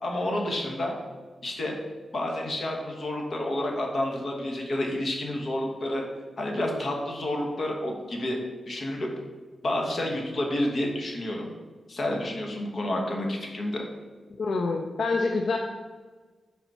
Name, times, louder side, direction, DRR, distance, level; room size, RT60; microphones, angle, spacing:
voice 1, 0.0-1.0 1.4-1.7 2.1-6.0 6.4-8.4 8.7-9.1 9.6-11.4 11.9-13.8, left 1 dB, 50° left, 0 dB, 1.3 m, -29 dB
voice 2, 14.4-15.6, left 3 dB, 65° left, 3 dB, 0.5 m, -26 dB
7.1 x 4.1 x 5.5 m, 1.3 s
wide cardioid pair, 145°, 0 cm